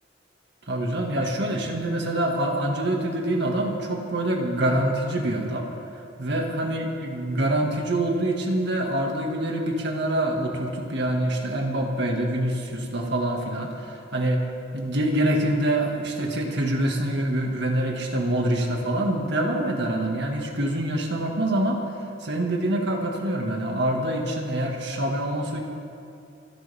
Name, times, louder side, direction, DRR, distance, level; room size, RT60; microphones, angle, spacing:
voice 1, 0.7-5.7 6.2-14.4 14.7-21.8 22.2-25.6, right 1 dB, 65° right, 1 dB, 2.0 m, -25 dB
28.0 x 11.0 x 3.6 m, 2.6 s
head